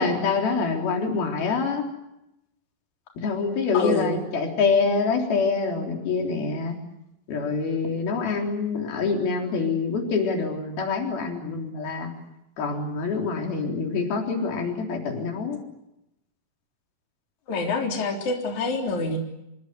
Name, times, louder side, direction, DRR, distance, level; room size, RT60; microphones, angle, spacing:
voice 1, 0.0-1.8 3.2-6.8 7.3-12.1 12.6-15.6, left 4 dB, 90° left, 3 dB, 5.5 m, -25 dB
voice 2, 3.7-4.2 17.5-19.2, left 3 dB, 55° left, 2 dB, 4.9 m, -26 dB
25.5 x 24.5 x 8.1 m, 0.88 s
omnidirectional pair, 4.2 m